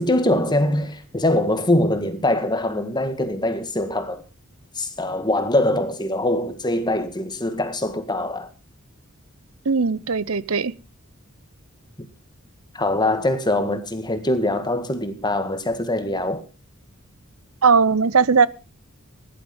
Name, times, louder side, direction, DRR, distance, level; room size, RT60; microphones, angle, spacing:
voice 1, 0.0-4.2 4.8-8.5 12.7-16.5, left 1 dB, 20° left, 1.8 m, -23 dB
voice 2, 9.7-10.7 17.6-18.5, right 5 dB, 85° right, 0.9 m, -18 dB
16.5 x 11.5 x 5.3 m
head